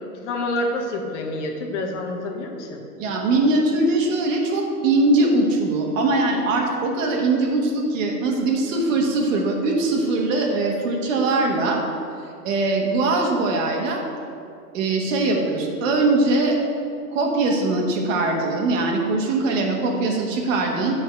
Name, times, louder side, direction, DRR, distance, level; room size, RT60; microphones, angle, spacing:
voice 1, 0.0-2.8, left 2 dB, 45° left, 3 dB, 1.0 m, -28 dB
voice 2, 3.0-11.8 12.4-14.0 14.7-16.6 17.1-20.9, right 2 dB, 50° right, 1 dB, 1.4 m, -21 dB
7.3 x 4.1 x 5.8 m, 2.4 s
hypercardioid pair, 135°, 48 cm